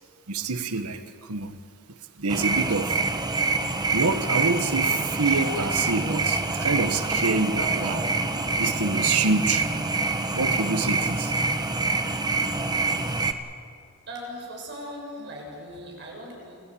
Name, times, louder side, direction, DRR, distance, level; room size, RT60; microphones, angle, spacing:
voice 1, 0.3-1.6 2.2-3.0 3.9-8.1 8.6-9.7 10.3-11.3, right 3 dB, 90° right, 9 dB, 1.3 m, -27 dB
sound 1, 2.3-13.3, right 3 dB, 20° right, 1.2 m, -26 dB
voice 2, 14.1-16.6, equal, 55° right, -1 dB, 6.9 m, -39 dB
28.5 x 15.0 x 8.6 m, 2.3 s
head